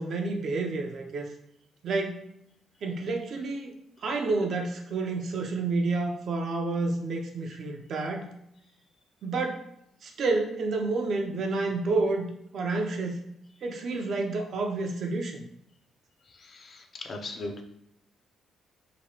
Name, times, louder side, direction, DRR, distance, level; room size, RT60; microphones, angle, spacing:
voice 1, 0.0-1.3 1.8-2.2 2.8-8.3 9.2-9.6 10.0-12.3 12.5-13.2 13.6-15.4, right 3 dB, 60° right, 2 dB, 0.5 m, -29 dB
voice 2, 16.4-17.6, left 2 dB, 45° left, 3 dB, 0.5 m, -38 dB
2.9 x 2.3 x 2.8 m, 0.76 s
cardioid pair, 90°, 0 cm